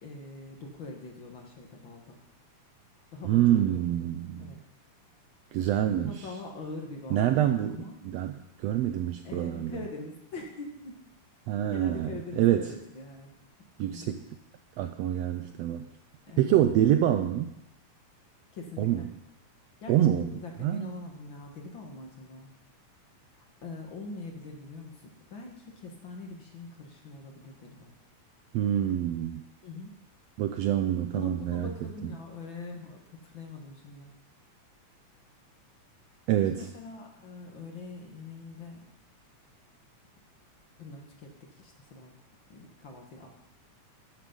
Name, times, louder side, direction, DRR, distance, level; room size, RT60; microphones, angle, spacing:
voice 1, 0.0-2.2 3.1-4.1 4.4-4.6 5.8-7.4 7.7-8.0 9.2-11.0 11.6-13.3 13.9-14.2 16.3-16.6 18.5-19.1 19.8-22.5 23.3-27.9 29.6-29.9 31.1-34.1 36.5-38.9 40.8-42.1 42.5-43.3, left 3 dB, 50° left, 1 dB, 1.8 m, -43 dB
voice 2, 3.2-4.6 5.5-6.3 7.1-9.8 11.5-12.7 13.8-14.2 14.8-15.9 16.4-17.5 18.8-19.0 19.9-20.9 28.5-29.4 30.4-31.7 36.3-36.7, right 11 dB, 80° right, 8 dB, 1.5 m, -26 dB
13.5 x 8.9 x 5.3 m, 0.87 s
omnidirectional pair, 3.4 m